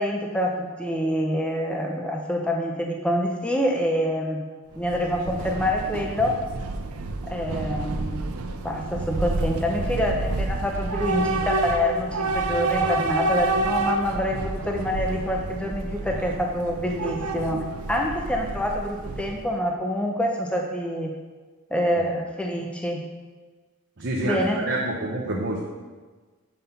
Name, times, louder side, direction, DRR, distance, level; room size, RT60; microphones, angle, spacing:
voice 1, 0.0-4.4 4.8-6.3 7.3-8.2 8.6-17.6 17.9-21.1 21.7-23.0 24.2-24.6, equal, 5° left, 0 dB, 0.5 m, -26 dB
Train / Subway metro underground, 4.7-19.6, right 2 dB, 75° right, 0.6 m, -29 dB
voice 2, 24.0-25.6, right 1 dB, 55° right, -3 dB, 0.8 m, -27 dB
5.6 x 5.5 x 5.7 m, 1.4 s
head